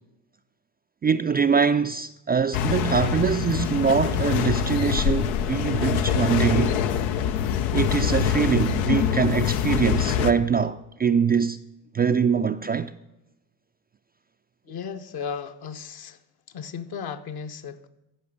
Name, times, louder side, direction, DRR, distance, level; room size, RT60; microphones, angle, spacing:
voice 1, 1.0-6.7 7.7-11.6 11.9-12.9, right 6 dB, 20° right, 0.4 m, -23 dB
sound 1, 2.5-10.3, left 8 dB, 80° left, 0.7 m, -24 dB
voice 2, 14.7-16.2 16.5-17.9, left 6 dB, 55° left, 1.1 m, -35 dB
14.0 x 5.1 x 6.6 m
hypercardioid pair, 60°, 45 cm